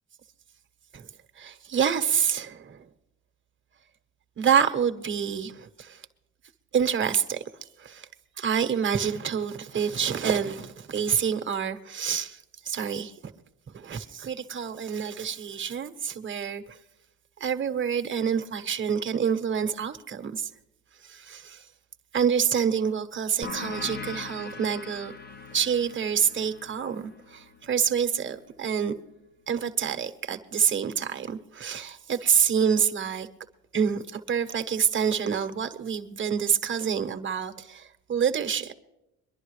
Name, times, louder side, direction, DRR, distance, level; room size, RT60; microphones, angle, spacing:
voice 1, 1.4-2.8 4.4-6.0 6.7-7.4 7.8-8.1 8.4-13.3 13.7-16.8 17.4-20.5 21.0-21.6 22.1-25.1 25.5-28.9 29.5-33.3 33.7-38.7, right 7 dB, 40° right, 1.2 m, -27 dB
sound 1, 23.4-28.6, left 4 dB, 35° left, 0.8 m, -41 dB
23.0 x 11.0 x 3.2 m
cardioid pair, 90°, 30 cm